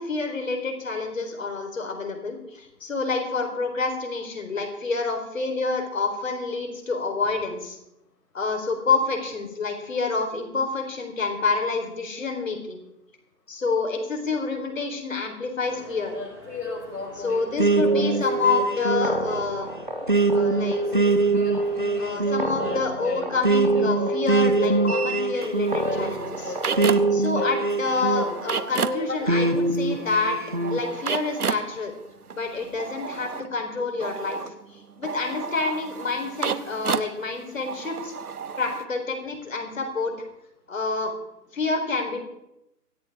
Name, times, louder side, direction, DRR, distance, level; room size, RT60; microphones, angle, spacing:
voice 1, 0.0-7.8 8.3-12.8 13.5-16.1 17.2-19.7 20.3-20.8 22.0-26.5 27.1-30.4 30.7-31.9 32.3-34.4 34.7-38.1 38.6-40.2 40.7-41.1 41.5-42.2, left 4 dB, 50° left, 4 dB, 4.0 m, -28 dB
sound 1, 15.6-22.5, right 2 dB, 5° right, 2.5 m, -45 dB
voice 2, 16.1-19.1 20.2-25.1 25.7-27.7 27.9-30.0, left 3 dB, 75° left, 0 dB, 5.3 m, -34 dB
sound 2, 17.6-28.6 29.3-30.8, right 3 dB, 30° right, 0.7 m, -24 dB
sound 3, 24.9-27.3 27.6-38.8, right 6 dB, 65° right, 1.0 m, -33 dB
24.5 x 10.5 x 3.6 m, 0.87 s
hypercardioid pair, 175°, 48 cm